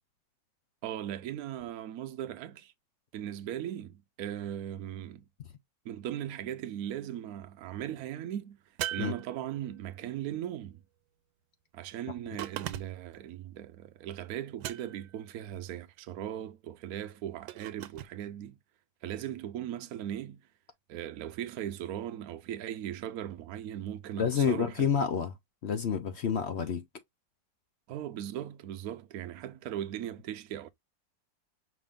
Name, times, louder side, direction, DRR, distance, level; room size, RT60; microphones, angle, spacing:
voice 1, 0.8-2.7 3.1-5.3 5.8-8.6 8.9-10.8 11.7-18.6 19.0-20.4 20.9-24.9 27.9-30.7, right 11 dB, 65° right, 1.0 m, -38 dB
sound 1, 8.8-9.9 12.4-13.2 14.6-15.2 17.5-18.1, right 13 dB, 90° right, 1.4 m, -39 dB
voice 2, 24.2-25.3 25.6-26.8, left 7 dB, 65° left, 0.6 m, -28 dB
5.9 x 2.5 x 3.6 m
omnidirectional pair, 2.0 m